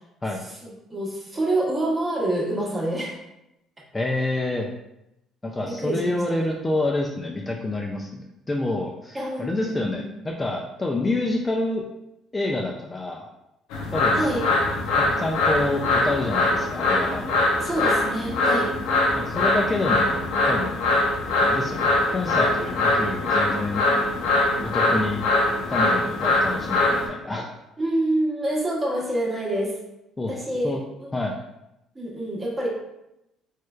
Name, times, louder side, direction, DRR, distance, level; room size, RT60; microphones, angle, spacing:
voice 1, 0.6-3.2 5.8-6.4 9.1-10.1 14.1-14.4 17.6-18.7 27.8-29.7 30.3-31.1 31.9-32.7, right 1 dB, 20° right, -3 dB, 0.9 m, -27 dB
voice 2, 3.9-4.7 5.4-8.2 8.5-11.8 12.3-13.3 13.9-14.3 15.0-17.4 19.1-20.9 21.4-23.8 24.7-25.3 25.7-27.5 30.2-30.3 30.6-30.8 31.1-31.3, left 2 dB, 20° left, 0 dB, 0.3 m, -28 dB
sound 1, 13.7-27.1, left 2 dB, 90° left, 0.6 m, -22 dB
3.1 x 3.1 x 2.3 m, 0.87 s
cardioid pair, 110°, 0 cm